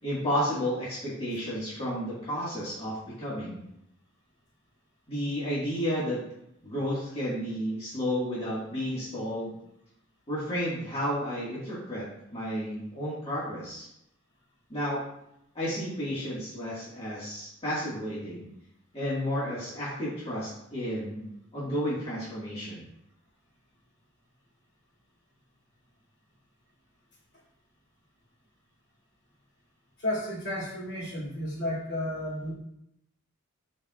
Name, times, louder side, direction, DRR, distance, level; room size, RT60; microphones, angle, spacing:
voice 1, 0.0-3.6 5.1-6.2 6.6-9.5 10.3-12.1 12.3-13.9 14.7-15.0 15.6-18.5 18.9-22.9, equal, 25° left, -9 dB, 1.8 m, -32 dB
voice 2, 30.0-32.5, left 1 dB, 55° left, -7 dB, 2.8 m, -32 dB
11.5 x 4.3 x 2.5 m, 0.79 s
head